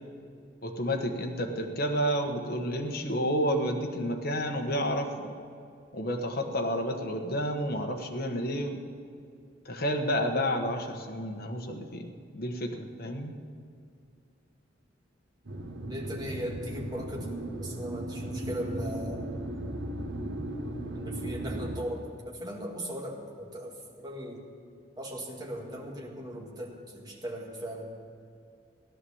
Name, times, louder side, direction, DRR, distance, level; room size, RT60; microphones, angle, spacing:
voice 1, 0.6-5.3 5.9-8.8 9.6-13.3, equal, 55° left, 3 dB, 1.4 m, -30 dB
sound 1, 15.4-21.8, right 1 dB, 75° right, 1.4 m, -36 dB
voice 2, 15.8-17.3 17.6-19.3 20.9-24.4 25.0-27.9, equal, 20° right, -1 dB, 2.1 m, -38 dB
15.5 x 11.0 x 7.2 m, 2.4 s
head